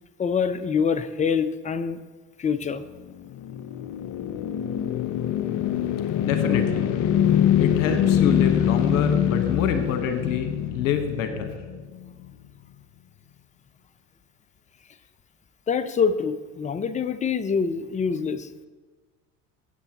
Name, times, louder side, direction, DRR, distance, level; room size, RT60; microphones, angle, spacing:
voice 1, 0.2-2.0 2.4-2.8 15.7-18.7, left 6 dB, 20° left, 13 dB, 0.6 m, -25 dB
sound 1, 3.0-12.3, left 9 dB, 50° left, 0.8 m, -24 dB
voice 2, 6.2-6.8 7.6-11.5, left 8 dB, 75° left, 7 dB, 1.2 m, -26 dB
15.0 x 7.9 x 2.9 m, 1.3 s
hypercardioid pair, 70°, 40 cm